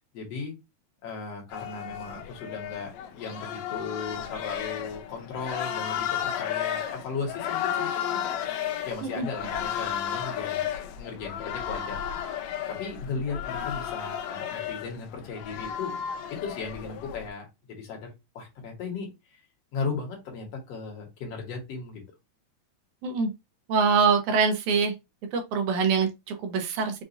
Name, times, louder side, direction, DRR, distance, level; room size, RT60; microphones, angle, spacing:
voice 1, 0.1-0.6 1.0-8.4 8.8-10.7 10.9-12.2 12.7-16.0 16.3-19.4 19.7-22.0, left 4 dB, 60° left, 2.2 m, -36 dB
sound 1, 1.5-17.3, left 9 dB, 80° left, 1.7 m, -33 dB
voice 2, 23.7-24.9 25.3-27.0, right 5 dB, 85° right, 2.3 m, -24 dB
5.9 x 2.4 x 2.6 m
omnidirectional pair, 3.4 m